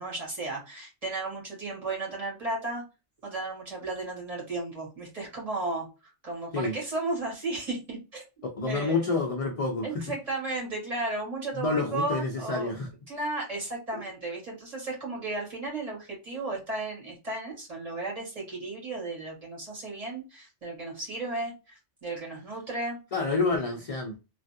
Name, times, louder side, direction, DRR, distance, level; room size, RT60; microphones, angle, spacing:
voice 1, 0.0-2.8 3.2-8.2 8.7-9.1 9.8-12.7 13.1-23.0, right 2 dB, 30° right, 1.7 m, -34 dB
voice 2, 8.6-10.0 11.6-12.9 13.9-14.0 23.1-24.1, left 3 dB, 50° left, 0.4 m, -28 dB
3.3 x 2.3 x 2.6 m
omnidirectional pair, 1.2 m